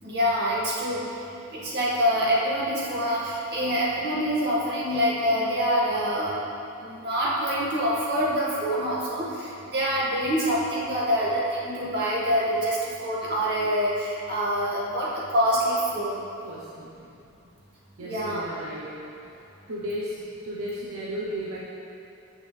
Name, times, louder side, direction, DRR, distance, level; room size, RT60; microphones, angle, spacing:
voice 1, 0.0-1.0 1.5-6.3 6.8-16.2 18.0-18.4, equal, 50° right, -6 dB, 2.1 m, -25 dB
voice 2, 16.4-17.1 18.0-19.4 19.7-21.6, equal, 75° right, -6 dB, 1.0 m, -35 dB
13.5 x 6.2 x 3.5 m, 2.6 s
head